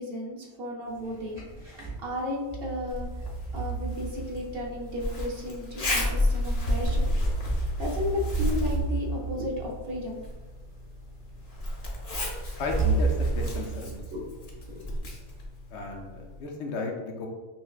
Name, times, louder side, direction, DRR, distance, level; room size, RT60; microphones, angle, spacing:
voice 1, 0.0-1.4 2.0-3.1 3.5-7.1 7.8-10.2 14.1-14.3 14.7-14.9, left 1 dB, 60° right, -2 dB, 0.9 m, -34 dB
sound 1, 1.0-2.0 2.5-4.9 6.1-10.5 11.3-11.4 12.8-14.7, right 4 dB, 25° right, 0.9 m, -32 dB
Zipper (clothing), 2.9-16.4, left 1 dB, 40° left, 0.6 m, -32 dB
voice 2, 12.6-14.0 15.7-17.3, left 3 dB, 75° left, 1 dB, 0.9 m, -34 dB
5.5 x 2.1 x 2.3 m, 1.2 s
omnidirectional pair, 1.2 m